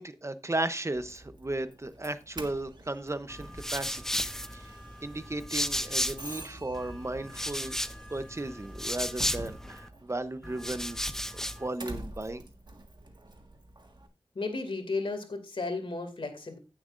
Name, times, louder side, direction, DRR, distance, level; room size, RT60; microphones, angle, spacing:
voice 1, 0.0-4.2 4.5-7.8 8.1-11.0 11.3-12.4, right 2 dB, 30° right, 12 dB, 0.7 m, -35 dB
Doorbell, 0.9-14.1, right 1 dB, 55° right, 1.6 m, -48 dB
sound 1, 3.3-6.4 6.7-9.9 10.4-11.7, equal, 5° left, 0.7 m, -34 dB
voice 2, 14.3-16.6, left 3 dB, 75° left, 6 dB, 2.4 m, -34 dB
16.0 x 7.4 x 2.5 m, 0.28 s
wide cardioid pair, 65°, 9 cm